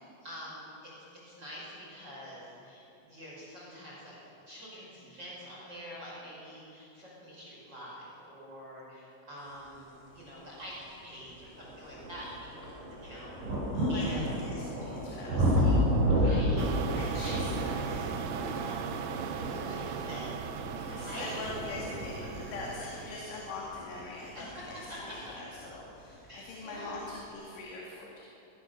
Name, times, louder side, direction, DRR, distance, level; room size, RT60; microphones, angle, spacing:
voice 1, 0.2-4.2 4.5-13.4 13.9-14.3 15.5-17.5 18.6-20.4 21.0-21.4 24.3-24.4 24.9-25.3 26.3-27.0, equal, 20° right, -5 dB, 5.8 m, -46 dB
sound 1, 10.5-10.6 11.2-25.9 26.8-26.9, equal, 45° right, 6.0 m, -32 dB
voice 2, 13.7-15.9 16.9-18.7 19.8-19.9 20.8-24.8 25.1-28.2, left 3 dB, 70° left, -3 dB, 4.7 m, -43 dB
sound 2, 16.6-23.6, right 7 dB, 70° right, 2.9 m, -38 dB
23.0 x 20.5 x 6.8 m, 2.8 s
omnidirectional pair, 5.8 m